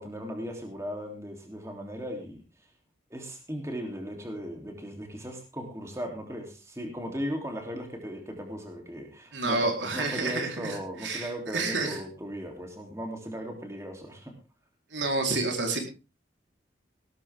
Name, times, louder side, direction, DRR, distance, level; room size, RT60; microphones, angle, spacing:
voice 1, 0.0-2.4 3.1-14.3, equal, 15° right, 2 dB, 3.3 m, -37 dB
voice 2, 9.3-12.0 14.9-15.8, right 3 dB, 80° right, 3 dB, 4.1 m, -29 dB
17.5 x 13.0 x 3.7 m, 0.31 s
head